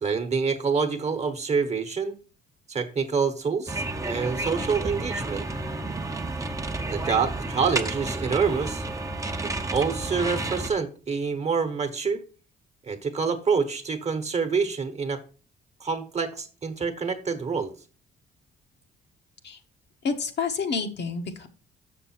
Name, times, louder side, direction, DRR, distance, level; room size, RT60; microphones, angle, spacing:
voice 1, 0.0-2.2 2.7-5.5 6.9-8.8 9.4-12.2 12.9-15.2 15.8-17.7, right 5 dB, 35° right, 8 dB, 1.2 m, -27 dB
sound 1, 3.7-10.7, right 2 dB, 15° right, 0.8 m, -31 dB
voice 2, 20.0-21.5, left 5 dB, 60° left, 5 dB, 1.3 m, -29 dB
6.8 x 6.6 x 4.4 m, 0.36 s
cardioid pair, 90°, 20 cm